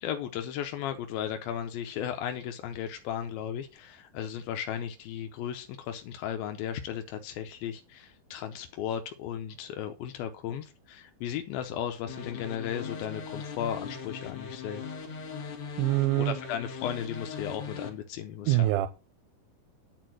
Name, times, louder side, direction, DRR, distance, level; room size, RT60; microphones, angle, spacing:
voice 1, 0.0-14.8 16.2-18.7, left 9 dB, 85° left, 2.6 m, -35 dB
sound 1, 12.1-17.9, left 5 dB, 45° left, 2.5 m, -40 dB
voice 2, 15.8-16.4 18.5-18.9, right 16 dB, 85° right, 2.5 m, -24 dB
9.7 x 4.6 x 7.5 m
omnidirectional pair, 4.2 m